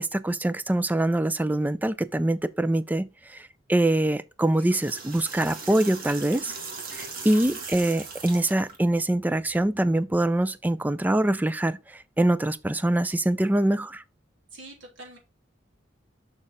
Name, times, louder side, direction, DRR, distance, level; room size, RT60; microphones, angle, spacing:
voice 1, 0.0-6.6 7.0-14.0, right 1 dB, 10° right, 0.3 m, -24 dB
sound 1, 4.4-8.8, right 4 dB, 50° right, 1.6 m, -39 dB
voice 2, 14.5-15.2, right 2 dB, 85° right, 3.0 m, -45 dB
6.5 x 6.0 x 3.6 m
head